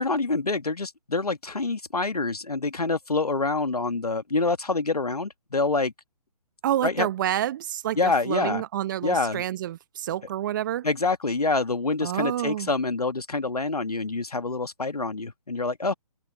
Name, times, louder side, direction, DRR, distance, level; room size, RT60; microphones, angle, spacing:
voice 1, 0.0-5.9 6.8-7.1 8.0-8.6 9.0-9.4 10.8-15.9, left 3 dB, 75° left, 2.0 m, -26 dB
voice 2, 6.6-10.8 12.0-12.7, right 12 dB, 30° right, 1.1 m, -28 dB
open air
figure-of-eight pair, 135°, 20 cm